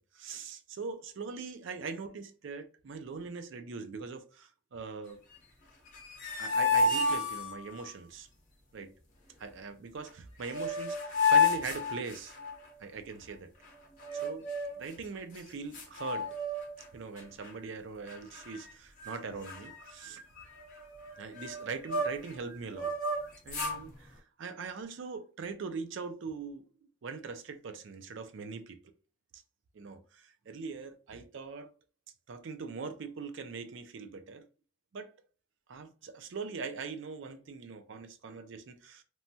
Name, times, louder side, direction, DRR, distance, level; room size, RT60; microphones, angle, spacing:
voice 1, 0.1-5.2 6.4-8.3 8.7-8.9 9.4-12.4 12.8-13.5 14.1-14.5 14.8-16.4 16.9-20.2 21.2-22.9 23.5-26.7 27.0-28.8 29.3-29.4 29.7-31.7 32.3-34.5 34.9-35.1 35.7-39.0, right 4 dB, 65° right, 0.4 m, -41 dB
sound 1, 5.9-7.9 10.1-10.2 10.4-12.6 14.0-14.8 15.4-15.5 15.7-16.8 17.2-17.5 18.1-18.7 19.0-19.2 19.4-22.3 22.7-23.8, left 3 dB, 40° left, 0.8 m, -31 dB
3.0 x 2.2 x 2.7 m
head